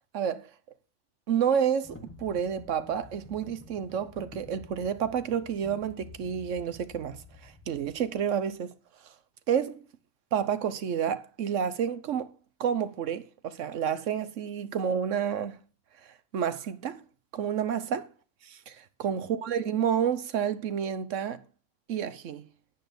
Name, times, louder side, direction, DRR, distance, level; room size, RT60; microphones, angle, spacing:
voice 1, 0.1-0.5 1.3-8.7 9.5-9.8 10.3-12.3 12.6-15.6 16.3-17.0 17.3-18.1 18.7-21.4 21.9-22.5, right 8 dB, 80° right, 1.2 m, -30 dB
sound 1, 1.8-8.5, left 3 dB, 10° left, 1.4 m, -50 dB
10.5 x 8.5 x 5.2 m
omnidirectional pair, 1.2 m